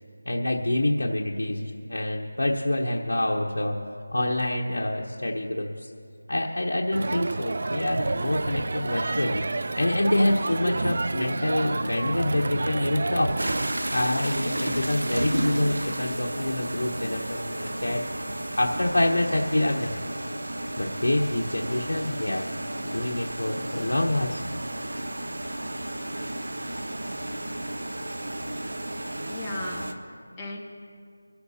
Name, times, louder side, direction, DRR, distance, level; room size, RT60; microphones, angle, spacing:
voice 1, 0.3-3.8 4.1-5.9 6.3-9.4 9.8-13.3 13.9-18.0 18.6-19.9 20.8-22.5 22.9-24.4, left 1 dB, 85° left, -2 dB, 1.2 m, -26 dB
Crowd, 6.9-13.7, right 2 dB, 50° right, 0.3 m, -29 dB
sound 1, 13.4-29.9, right 1 dB, 80° right, 1.1 m, -32 dB
voice 2, 29.3-30.6, left 2 dB, 10° left, -5 dB, 1.3 m, -37 dB
24.5 x 13.0 x 2.8 m, 2.3 s
figure-of-eight pair, 175°, 0 cm